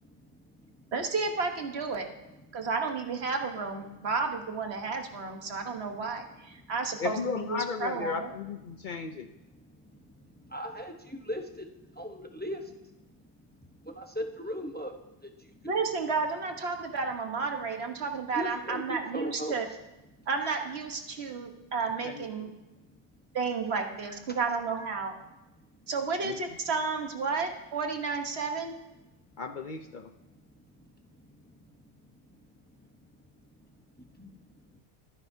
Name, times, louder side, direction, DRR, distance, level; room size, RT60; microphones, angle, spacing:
voice 1, 0.0-0.8 2.5-2.7 4.0-4.1 6.5-6.7 8.7-8.8 9.6-13.0 13.6-15.6 18.3-19.6 20.2-20.3 21.1-21.2 21.4-21.5 22.8-22.9 23.7-23.8 24.3-24.4 25.6-25.7 30.5-32.2 32.7-33.1 33.6-34.8, equal, 10° left, 4 dB, 0.8 m, -41 dB
voice 2, 0.9-2.1 2.5-8.3 15.7-19.7 20.3-22.5 23.3-25.2 25.9-28.7, right 4 dB, 65° right, 4 dB, 1.4 m, -32 dB
voice 3, 7.0-9.3 22.0-22.5 26.2-26.4 29.4-30.1, left 5 dB, 50° left, 7 dB, 0.7 m, -35 dB
23.0 x 9.7 x 2.7 m, 1.0 s
omnidirectional pair, 1.2 m